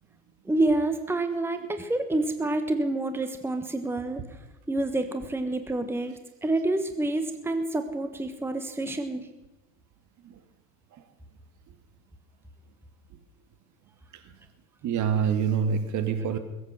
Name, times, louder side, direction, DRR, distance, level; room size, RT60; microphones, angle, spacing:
voice 1, 0.4-4.4 4.7-6.1 6.4-9.3, right 2 dB, 5° right, 1.3 m, -28 dB
voice 2, 14.8-16.4, right 7 dB, 45° right, 1.9 m, -26 dB
21.0 x 8.4 x 6.3 m
hypercardioid pair, 90°, 40 cm